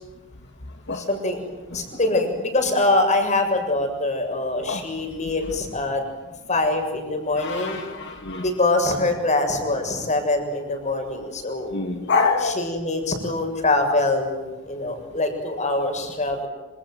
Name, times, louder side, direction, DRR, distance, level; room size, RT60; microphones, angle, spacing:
voice 1, 1.0-1.4 1.7-6.0 6.5-7.8 8.4-11.7 12.4-16.5, left 2 dB, 35° left, 6 dB, 7.1 m, -24 dB
voice 2, 7.3-8.5 11.7-12.7, left 4 dB, 60° left, 4 dB, 2.4 m, -26 dB
27.0 x 27.0 x 7.8 m, 1.2 s
head